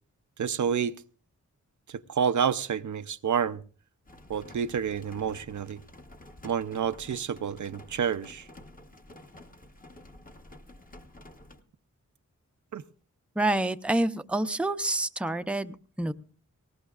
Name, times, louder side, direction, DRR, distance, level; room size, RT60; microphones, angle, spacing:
voice 1, 0.4-1.0 1.9-3.6 4.3-5.8 6.4-8.5 12.7-12.8, right 7 dB, 70° right, 0.5 m, -29 dB
sound 1, 4.1-11.6, left 1 dB, 25° left, 1.1 m, -50 dB
voice 2, 13.4-16.1, right 2 dB, 5° right, 0.5 m, -28 dB
20.0 x 18.0 x 2.4 m
wide cardioid pair, 90°, 31 cm